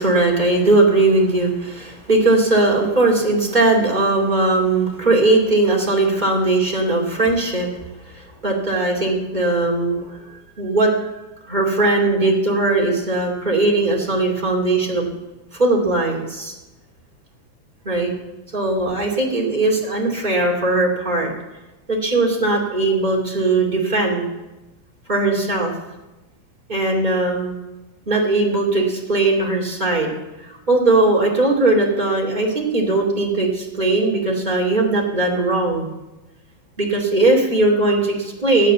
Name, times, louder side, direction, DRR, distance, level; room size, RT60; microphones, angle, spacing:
voice 1, 0.0-7.7 8.0-11.1 11.5-15.1 15.6-16.5 17.8-18.1 18.5-21.3 21.9-24.3 25.1-25.7 26.7-27.6 28.0-30.1 30.4-35.9 36.8-38.7, right 2 dB, 15° right, -1 dB, 1.7 m, -19 dB
16.0 x 9.2 x 7.5 m, 1.0 s
omnidirectional pair, 5.2 m